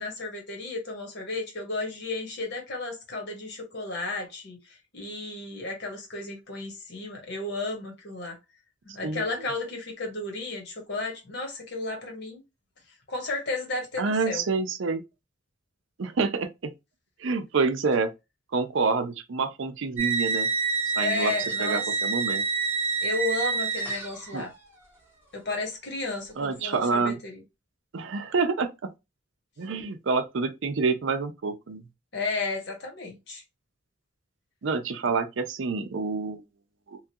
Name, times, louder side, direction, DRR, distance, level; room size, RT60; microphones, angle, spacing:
voice 1, 0.0-8.4 8.8-12.4 13.1-14.4 21.0-22.1 23.0-24.5 25.3-27.4 32.1-33.4, left 3 dB, 55° left, 1.2 m, -33 dB
voice 2, 14.0-15.0 16.0-16.7 17.2-18.1 18.5-20.5 21.0-21.3 21.6-22.4 24.3-24.4 26.4-27.2 27.9-28.9 29.6-31.8 34.6-36.4 36.9-37.0, right 4 dB, 65° right, 0.5 m, -27 dB
sound 1, 20.0-24.5, right 5 dB, 10° right, 1.0 m, -28 dB
3.0 x 2.4 x 2.7 m
head